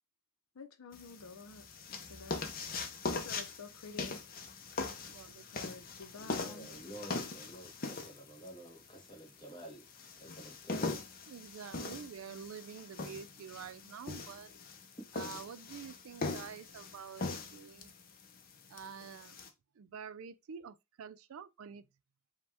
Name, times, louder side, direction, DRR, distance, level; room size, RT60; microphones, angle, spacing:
voice 1, 0.5-2.5 3.1-4.2 5.5-6.7, left 4 dB, 90° left, 0.6 m, -50 dB
sound 1, 0.9-19.5, left 3 dB, 45° left, 0.6 m, -41 dB
voice 2, 5.1-5.5 11.3-14.5 15.1-17.9 18.7-19.4 19.8-21.9, right 7 dB, 85° right, 0.4 m, -48 dB
voice 3, 6.3-9.8 10.2-11.0 15.0-15.1, right 1 dB, 20° left, 1.1 m, -50 dB
5.1 x 2.3 x 3.4 m
head